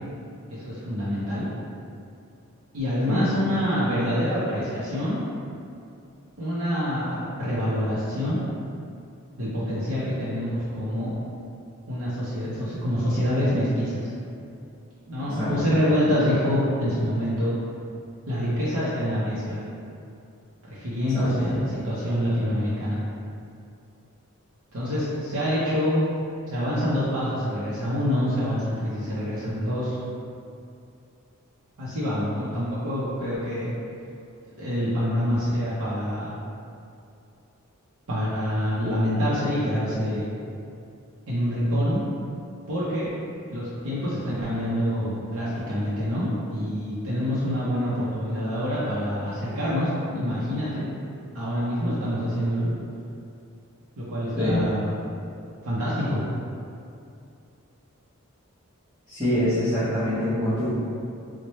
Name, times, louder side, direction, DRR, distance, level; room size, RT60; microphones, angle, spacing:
voice 1, 0.5-1.5 2.7-5.2 6.4-8.4 9.4-11.2 11.9-14.1 15.1-17.5 18.3-19.6 20.7-23.0 24.7-26.0 26.5-30.0 31.8-33.7 34.6-36.3 38.1-40.3 41.3-42.0 42.7-43.1 43.5-50.9 51.3-52.7 54.0-54.9 55.6-56.2, equal, 80° right, -9 dB, 0.6 m, -26 dB
voice 2, 21.1-21.6 54.4-54.6 59.1-60.7, left 1 dB, 20° right, -16 dB, 0.8 m, -25 dB
3.1 x 2.1 x 4.1 m, 2.5 s
head